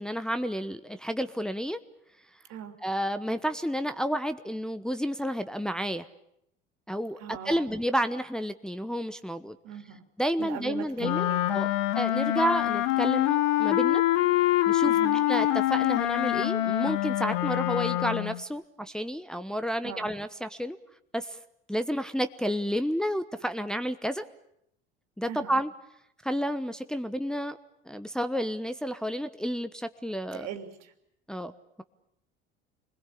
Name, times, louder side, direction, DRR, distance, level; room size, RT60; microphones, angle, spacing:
voice 1, 0.0-1.8 2.8-6.0 6.9-9.6 10.2-11.7 11.9-14.0 14.7-20.8 21.1-21.4 21.7-24.3 25.2-25.7 26.2-27.6 27.9-30.5 31.3-31.5, equal, ahead, 8 dB, 1.0 m, -30 dB
voice 2, 7.2-7.7 9.6-10.1 10.4-11.5 14.8-15.2 19.8-20.1 25.3-25.6 30.3-30.9, right 8 dB, 60° right, 6 dB, 3.2 m, -40 dB
Wind instrument woodwind instrument, 11.0-18.4, left 14 dB, 70° left, 1.2 m, -25 dB
26.5 x 21.0 x 8.5 m, 0.77 s
hypercardioid pair, 70°, 30 cm